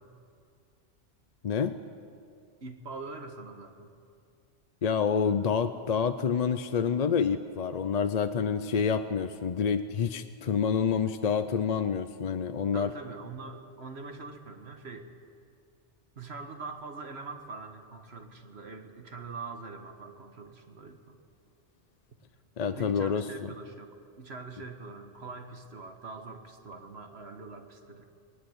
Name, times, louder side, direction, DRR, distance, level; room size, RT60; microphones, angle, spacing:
voice 1, 1.4-1.8 4.8-12.9 22.6-23.3, left 6 dB, 45° left, 10 dB, 0.6 m, -28 dB
voice 2, 2.6-3.9 10.9-11.0 12.7-15.1 16.2-21.2 22.7-28.1, right 3 dB, 65° right, 6 dB, 1.7 m, -43 dB
19.5 x 19.5 x 8.0 m, 2.4 s
omnidirectional pair, 1.2 m